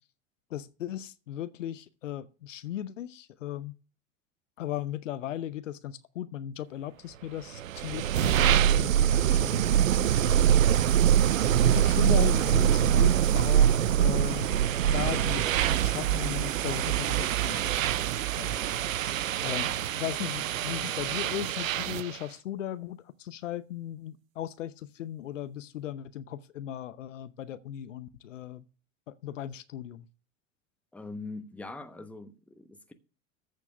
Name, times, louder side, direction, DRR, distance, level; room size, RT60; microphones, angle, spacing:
voice 1, 0.5-3.8 4.6-10.6 11.6-14.6 14.9-18.1 18.4-18.8 19.4-28.6 29.1-30.1, left 11 dB, 70° left, 0.8 m, -37 dB
sound 1, 7.5-22.2, right 10 dB, 80° right, 0.5 m, -24 dB
voice 2, 30.9-32.9, left 3 dB, 5° left, 1.1 m, -42 dB
14.0 x 4.6 x 6.8 m
figure-of-eight pair, 80°, 39 cm